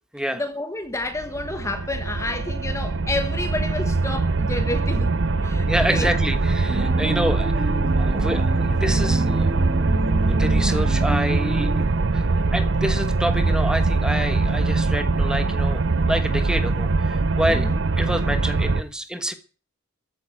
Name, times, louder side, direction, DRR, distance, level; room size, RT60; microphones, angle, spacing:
voice 1, 0.3-6.2 17.5-17.8, left 2 dB, 15° left, 1.3 m, -30 dB
sound 1, 1.0-18.8, right 3 dB, 60° right, 0.7 m, -22 dB
voice 2, 5.7-9.6 10.3-11.7 12.1-12.3 12.5-17.7 18.0-19.3, equal, 5° right, 1.4 m, -28 dB
sound 2, 6.7-11.8, equal, 30° right, 1.9 m, -30 dB
14.5 x 8.6 x 7.7 m
head